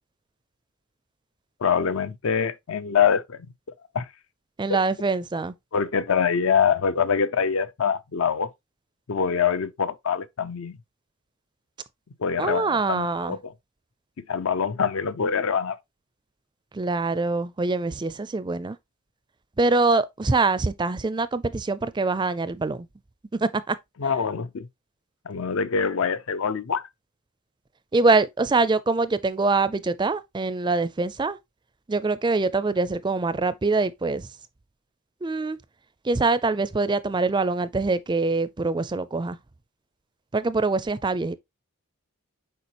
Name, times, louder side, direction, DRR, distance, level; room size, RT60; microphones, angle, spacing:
voice 1, 1.6-3.5 3.9-4.1 5.7-8.5 9.1-10.8 12.2-13.5 14.3-15.8 24.0-24.7 25.3-26.8, left 6 dB, 65° left, 0.5 m, -24 dB
voice 2, 4.6-5.5 12.4-13.4 16.7-18.8 19.6-22.9 23.3-23.8 27.9-31.4 31.9-34.3 35.2-35.6 36.0-39.4 40.3-41.4, right 3 dB, 20° right, 0.4 m, -24 dB
6.9 x 4.8 x 3.0 m
head